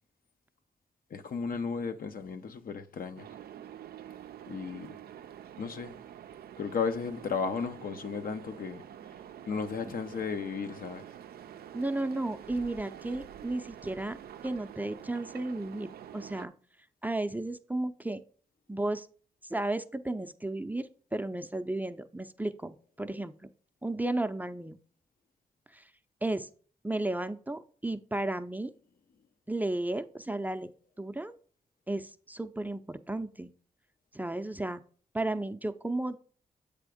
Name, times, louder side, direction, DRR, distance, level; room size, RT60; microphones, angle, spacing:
voice 1, 1.1-3.3 4.5-5.0 5.6-5.9 6.6-8.8 9.5-11.0, left 5 dB, 65° left, 0.7 m, -34 dB
sound 1, 3.2-16.5, right 10 dB, 75° right, 0.4 m, -47 dB
voice 2, 11.7-16.5 17.0-18.2 18.7-19.1 19.4-23.5 23.8-24.8 25.7-25.9 26.2-26.5 26.8-28.7 29.5-30.7 31.0-31.3 31.9-33.5 34.1-34.8 35.1-36.2, right 2 dB, 10° right, 0.5 m, -34 dB
7.5 x 3.5 x 5.0 m
cardioid pair, 50°, 16 cm